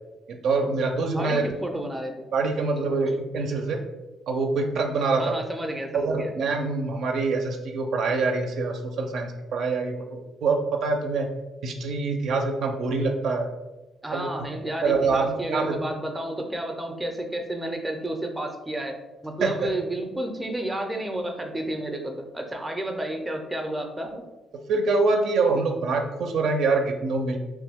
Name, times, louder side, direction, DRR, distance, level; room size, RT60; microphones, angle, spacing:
voice 1, 0.4-1.4 2.3-3.8 4.3-5.3 5.9-11.3 11.6-13.5 14.1-14.3 14.8-15.8 19.4-19.7 24.7-27.4, right 3 dB, 75° right, 3 dB, 0.4 m, -25 dB
voice 2, 1.0-2.3 2.5-3.2 5.2-6.4 14.0-19.0 19.2-24.2, right 1 dB, 10° right, 3 dB, 0.5 m, -31 dB
2.9 x 2.2 x 3.4 m, 1.1 s
cardioid pair, 90°, 0 cm